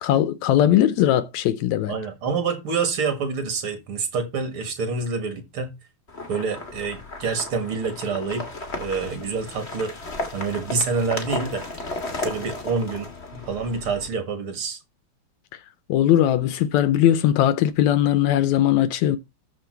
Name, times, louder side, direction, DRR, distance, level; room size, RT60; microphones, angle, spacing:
voice 1, 0.0-2.0 15.9-19.2, left 11 dB, 80° left, 1.8 m, -19 dB
voice 2, 1.9-5.7 6.3-8.5 8.8-9.9 10.3-11.6 12.2-14.8, right 4 dB, 50° right, 2.4 m, -27 dB
sound 1, 6.1-14.1, left 2 dB, 25° left, 1.6 m, -34 dB
13.5 x 4.5 x 4.4 m
omnidirectional pair, 3.5 m